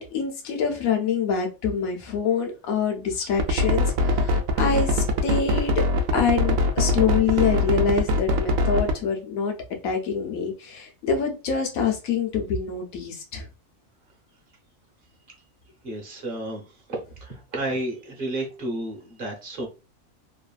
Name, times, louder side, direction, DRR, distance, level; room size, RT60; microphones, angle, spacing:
voice 1, 0.0-5.7 6.1-9.5 9.8-13.4, left 6 dB, 80° left, 1.2 m, -25 dB
sound 1, 3.4-9.0, left 1 dB, 75° right, 1.0 m, -22 dB
voice 2, 15.8-16.6 17.2-19.7, right 1 dB, 45° right, 1.0 m, -31 dB
3.1 x 2.4 x 2.3 m
omnidirectional pair, 1.5 m